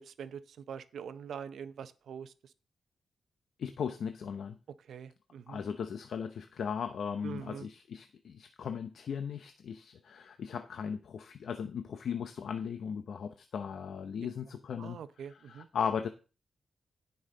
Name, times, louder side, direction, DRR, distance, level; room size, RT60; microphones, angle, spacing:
voice 1, 0.0-2.5 4.8-5.6 7.2-7.7 14.8-15.7, right 7 dB, 85° right, 0.6 m, -44 dB
voice 2, 3.6-4.6 5.5-15.0 15.3-16.1, left 7 dB, 75° left, 0.7 m, -37 dB
16.5 x 5.6 x 3.8 m
wide cardioid pair, 120°, 0 cm